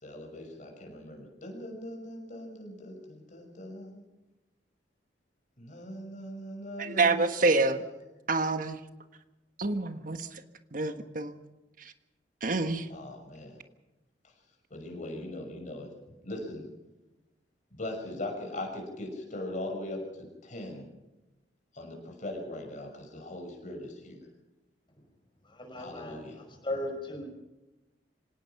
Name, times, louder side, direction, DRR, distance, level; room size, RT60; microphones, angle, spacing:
voice 1, 0.0-4.1 5.6-7.8 12.9-13.6 14.7-15.9 16.2-16.7 17.7-20.9 21.7-24.2 25.8-26.4, left 1 dB, 45° left, 6.1 m, -40 dB
voice 2, 6.8-7.8 8.3-8.8 9.6-10.3 10.7-11.3 12.4-12.9, right 3 dB, 50° right, 1.5 m, -27 dB
voice 3, 25.5-26.2 26.6-27.3, left 1 dB, 30° left, 5.3 m, -36 dB
26.0 x 18.0 x 5.9 m
head